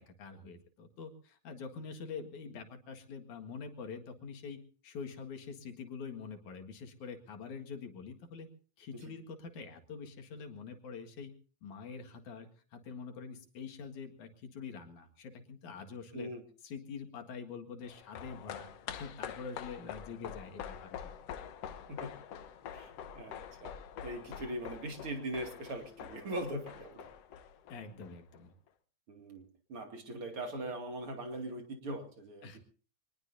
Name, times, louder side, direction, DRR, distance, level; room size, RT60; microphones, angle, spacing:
voice 1, 0.0-8.5 8.8-11.3 11.6-16.3 16.6-21.1 27.7-28.5 32.4-32.6, left 5 dB, 85° left, 5 dB, 3.3 m, -45 dB
voice 2, 16.1-16.4 22.0-22.1 22.7-23.7 24.0-27.1 29.1-32.6, right 1 dB, 50° right, 4 dB, 3.2 m, -41 dB
sound 1, 17.8-28.4 28.7-28.8, left 8 dB, 65° left, 2.0 m, -46 dB
25.0 x 20.0 x 2.7 m, 0.39 s
omnidirectional pair, 3.3 m